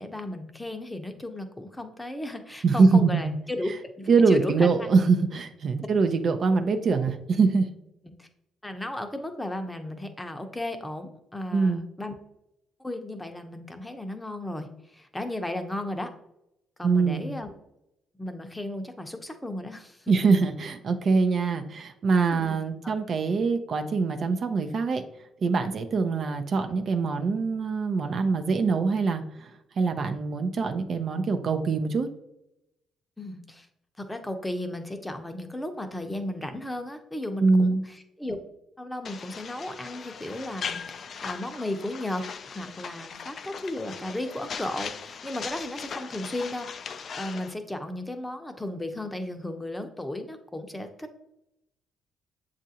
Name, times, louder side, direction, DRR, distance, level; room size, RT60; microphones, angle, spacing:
voice 1, 0.0-3.7 4.0-4.9 8.0-8.3 8.6-12.1 12.8-16.1 16.8-17.5 18.2-20.2 22.3-22.6 22.8-22.9 33.2-33.7 34.0-38.4 38.8-51.2, left 1 dB, 10° left, 6 dB, 0.7 m, -35 dB
voice 2, 2.6-3.3 4.1-7.7 11.5-11.8 16.8-17.3 20.1-25.0 25.4-29.5 29.8-32.1 37.4-37.8, right 4 dB, 55° right, 6 dB, 0.4 m, -23 dB
sound 1, 39.0-47.5, left 6 dB, 55° left, 0.3 m, -39 dB
7.3 x 2.5 x 2.7 m, 0.84 s
supercardioid pair, 60°, 0 cm